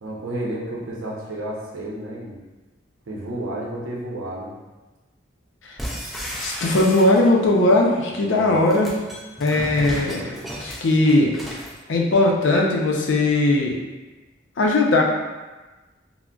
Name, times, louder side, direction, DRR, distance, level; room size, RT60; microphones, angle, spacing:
voice 1, 0.0-2.4 3.1-4.5 8.2-8.6, right 1 dB, 85° right, -2 dB, 0.6 m, -31 dB
sound 1, 5.8-7.5 8.5-11.8, equal, ahead, 0.4 m, -34 dB
voice 2, 6.4-9.0 9.4-11.3 11.9-13.7 14.6-15.0, left 2 dB, 75° left, 0 dB, 0.5 m, -19 dB
3.6 x 2.0 x 2.2 m, 1.2 s
head